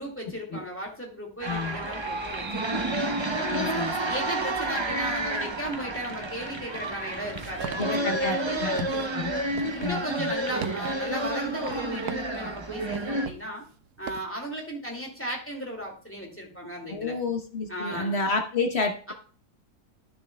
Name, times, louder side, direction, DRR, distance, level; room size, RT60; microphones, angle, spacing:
voice 1, 0.0-3.0 3.4-3.8 4.1-9.4 9.7-13.6 14.0-17.2 17.7-18.2 19.1-19.2, equal, 10° left, 0 dB, 2.1 m, -35 dB
sound 1, 1.4-13.3, right 2 dB, 30° right, 0.6 m, -30 dB
voice 2, 1.5-1.8 3.5-3.9 7.8-8.9 9.2-9.3 9.8-10.3 16.9-19.1, left 3 dB, 50° left, 5 dB, 1.0 m, -30 dB
sound 2, 7.0-14.2, right 8 dB, 80° right, 1.2 m, -41 dB
13.0 x 6.7 x 2.2 m, 0.43 s
omnidirectional pair, 1.6 m